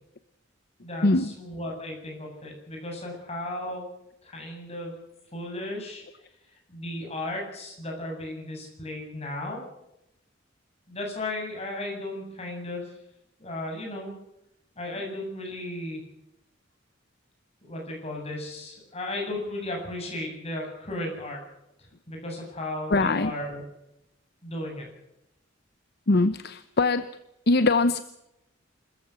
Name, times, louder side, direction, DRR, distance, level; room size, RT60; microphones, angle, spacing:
voice 1, 0.8-3.8 4.2-4.9 5.3-6.0 6.7-9.6 10.9-12.9 13.4-14.1 14.8-16.0 17.6-21.4 21.8-23.6 24.4-24.9, left 1 dB, 30° left, 1 dB, 7.9 m, -35 dB
voice 2, 22.9-23.3 26.1-27.0 27.5-28.0, left 2 dB, 55° left, 12 dB, 0.8 m, -22 dB
27.0 x 14.5 x 8.1 m, 0.86 s
head